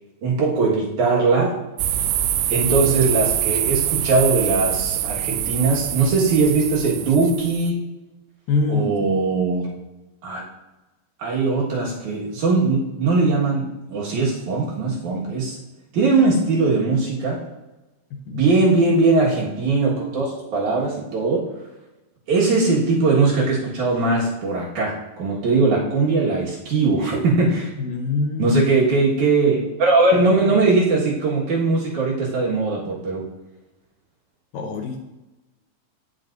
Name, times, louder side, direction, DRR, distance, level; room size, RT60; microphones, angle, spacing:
voice 1, 0.2-1.6 2.5-7.8 8.7-9.7 10.2-10.4 11.2-15.6 15.9-17.4 18.3-21.4 22.3-27.7 28.4-33.3, right 3 dB, 60° right, -4 dB, 2.7 m, -20 dB
sound 1, 1.8-7.7, right 11 dB, 80° right, 2.2 m, -24 dB
voice 2, 8.5-8.9 18.3-18.4 27.8-28.6 34.5-35.1, left 4 dB, 75° left, 3 dB, 2.4 m, -24 dB
17.5 x 5.8 x 2.6 m, 1.1 s
omnidirectional pair, 4.4 m